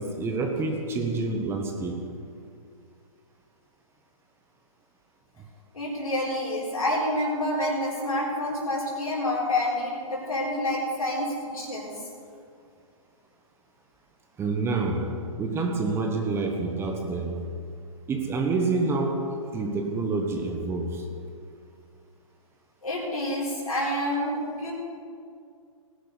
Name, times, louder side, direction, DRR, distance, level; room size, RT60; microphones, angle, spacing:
voice 1, 0.0-2.1 14.4-17.5 18.1-21.1, right 3 dB, 15° right, 1.2 m, -28 dB
voice 2, 5.7-11.9 22.8-24.7, left 1 dB, 80° left, 4.1 m, -28 dB
18.5 x 11.0 x 4.1 m
hypercardioid pair, 130°, 18 cm